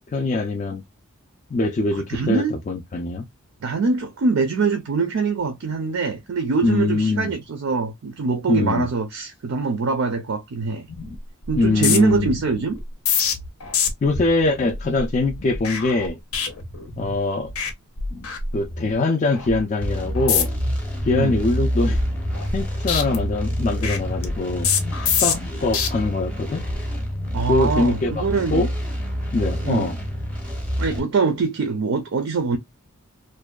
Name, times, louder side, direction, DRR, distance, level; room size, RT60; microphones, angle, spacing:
voice 1, 0.1-0.8 1.5-3.2 6.6-7.3 8.5-8.9 11.6-12.4 14.0-16.2 17.0-17.5 18.5-20.5 21.0-22.0 22.5-24.7 25.2-26.6 27.5-28.3 28.5-28.7 29.3-29.9, left 3 dB, 35° left, 0.3 m, -23 dB
voice 2, 1.9-2.5 3.6-10.9 11.5-12.8 21.1-21.4 27.3-28.7 29.6-30.0 30.8-32.6, right 4 dB, 65° right, 0.4 m, -23 dB
sound 1, 10.9-11.2 11.4-17.2 17.5-17.7 18.0-18.9 19.3-19.6 20.1-20.7 21.1-22.6 22.9-25.9 26.4-26.8, left 6 dB, 75° left, 0.6 m, -27 dB
sound 2, 19.8-31.0, equal, 5° left, 0.6 m, -27 dB
2.6 x 2.1 x 2.2 m
head